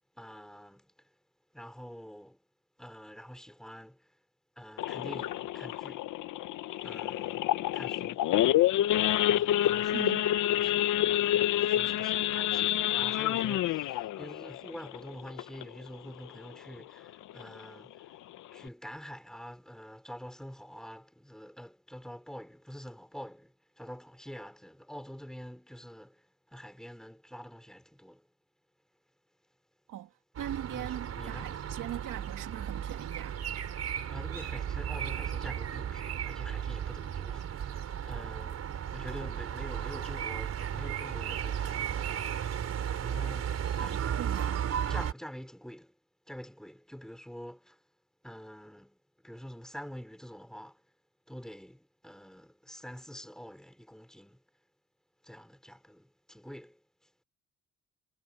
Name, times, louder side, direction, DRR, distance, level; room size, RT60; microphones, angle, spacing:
voice 1, 0.2-1.1 1.5-2.4 2.8-4.2 4.6-6.1 6.8-7.5 7.7-8.2 9.3-18.2 18.5-28.3 30.7-31.6 34.1-38.7 38.9-42.4 43.0-44.1 44.7-45.9 46.3-47.8 48.2-50.8 51.3-54.4 55.2-57.1, equal, ahead, 4.4 m, -47 dB
Idling / Accelerating revving vroom / Sawing, 4.8-15.9 16.3-16.5 16.7-16.8 17.3-17.6 18.0-18.1 18.3-18.7, left 13 dB, 75° left, 0.8 m, -28 dB
voice 2, 9.9-10.3 29.9-33.4 43.8-44.7, right 12 dB, 80° right, 2.5 m, -40 dB
sound 1, 30.3-45.1, right 9 dB, 55° right, 4.4 m, -35 dB
cardioid pair, 140°, 31 cm